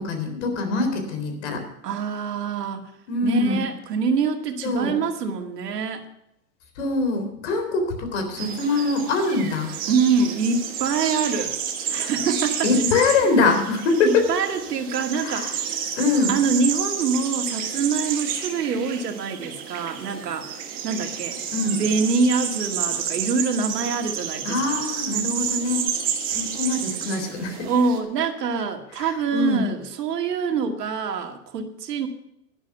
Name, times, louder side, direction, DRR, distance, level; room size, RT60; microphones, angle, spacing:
voice 1, 0.0-1.6 3.1-3.6 4.6-5.0 6.8-9.7 12.6-14.3 15.2-15.5 16.0-16.3 21.5-21.8 24.4-25.9 26.3-27.7 29.0-29.7, left 3 dB, 45° left, 6 dB, 3.7 m, -23 dB
voice 2, 1.8-2.9 3.2-6.0 9.9-11.6 11.9-12.9 14.0-15.5 16.3-21.4 21.8-24.8 27.6-32.1, right 5 dB, 85° right, 5 dB, 2.3 m, -25 dB
sound 1, 8.4-28.0, right 8 dB, 20° right, 1.3 m, -30 dB
11.5 x 11.5 x 5.9 m, 0.80 s
supercardioid pair, 165°, 47 cm